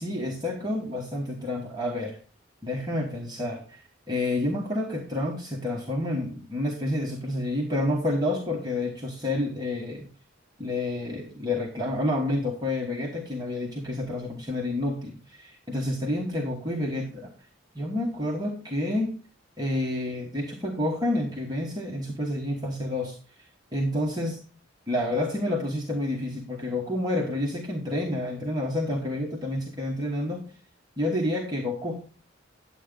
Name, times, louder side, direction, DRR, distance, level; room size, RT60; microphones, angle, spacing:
voice 1, 0.0-2.2 2.6-3.8 4.1-10.1 10.6-17.3 17.7-19.2 19.6-23.2 23.7-24.4 24.9-30.4 31.0-32.0, left 1 dB, 20° right, -2 dB, 1.2 m, -29 dB
10.5 x 8.1 x 3.7 m, 0.37 s
head